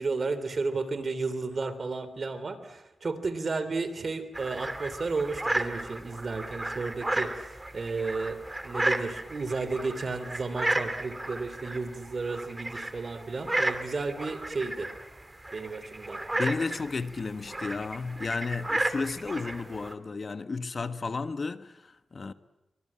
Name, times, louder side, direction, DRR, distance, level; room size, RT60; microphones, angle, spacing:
voice 1, 0.0-14.9 15.5-16.2, right 3 dB, 50° right, 3.3 m, -33 dB
sound 1, 4.3-19.9, right 1 dB, 20° right, 2.7 m, -33 dB
voice 2, 16.3-22.3, left 4 dB, 45° left, 1.3 m, -33 dB
26.0 x 24.5 x 8.8 m
wide cardioid pair, 85°, 0 cm